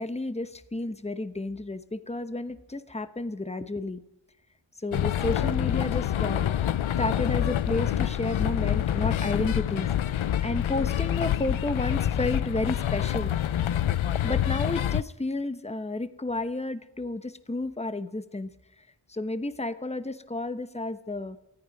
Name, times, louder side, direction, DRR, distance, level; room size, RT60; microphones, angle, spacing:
voice 1, 0.0-4.0 4.8-6.6 7.0-9.9 10.4-13.3 14.2-18.5 19.1-21.4, left 2 dB, 15° left, 11 dB, 1.0 m, -31 dB
sound 1, 4.9-15.0, left 11 dB, 85° left, 0.6 m, -27 dB
19.5 x 14.0 x 5.3 m, 0.90 s
cardioid pair, 40°, 46 cm